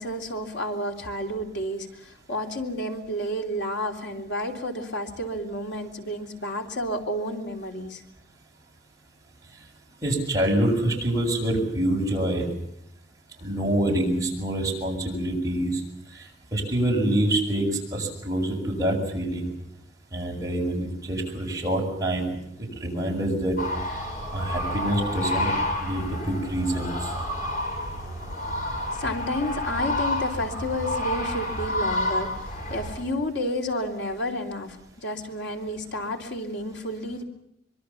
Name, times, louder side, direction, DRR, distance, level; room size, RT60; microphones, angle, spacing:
voice 1, 0.0-8.0 28.9-37.2, left 1 dB, 90° left, 3 dB, 3.4 m, -31 dB
voice 2, 10.0-12.5 13.4-15.8 16.1-16.2 16.5-17.7 17.9-19.5 20.1-22.3 22.6-23.6 24.3-25.5 25.8-27.1, right 1 dB, 20° right, -1 dB, 7.2 m, -26 dB
sound 1, 23.6-33.0, left 1 dB, 50° left, 6.4 m, -29 dB
25.0 x 23.0 x 7.1 m, 0.77 s
head